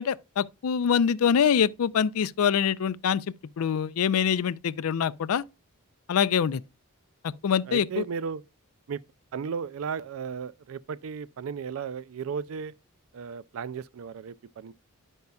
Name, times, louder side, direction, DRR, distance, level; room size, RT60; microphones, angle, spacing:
voice 1, 0.0-5.4 6.1-6.6 7.4-8.0, left 7 dB, 75° left, 0.4 m, -25 dB
voice 2, 7.7-8.4 8.9-9.0 9.3-12.7 13.1-14.7, right 6 dB, 65° right, 0.3 m, -35 dB
10.5 x 5.4 x 2.3 m
head